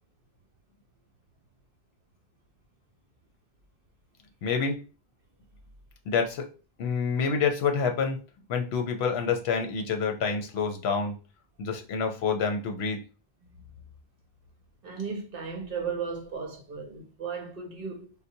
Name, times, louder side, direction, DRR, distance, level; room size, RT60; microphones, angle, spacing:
voice 1, 4.4-4.8 6.1-6.5 6.8-8.2 8.5-11.2 11.6-13.0, left 5 dB, 75° left, 0.9 m, -27 dB
voice 2, 14.8-18.1, right 5 dB, 65° right, 0.7 m, -35 dB
3.9 x 2.1 x 2.6 m
omnidirectional pair, 1.1 m